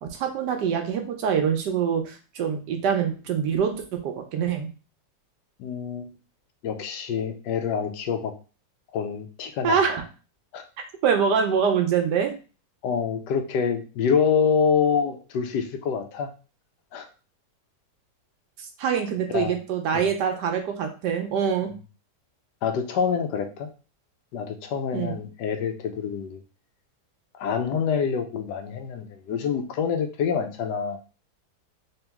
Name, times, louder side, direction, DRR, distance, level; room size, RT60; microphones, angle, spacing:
voice 1, 0.0-4.7 9.6-10.0 11.0-12.3 18.6-21.7 24.9-25.2, right 7 dB, 80° right, 4 dB, 1.4 m, -25 dB
voice 2, 5.6-6.1 6.6-8.3 8.9-9.8 10.5-10.6 12.8-16.3 16.9-17.1 19.3-19.5 19.9-20.1 22.6-23.7 24.3-26.4 27.3-31.1, left 6 dB, 85° left, 6 dB, 1.3 m, -26 dB
3.5 x 2.9 x 3.5 m, 0.34 s
omnidirectional pair, 1.8 m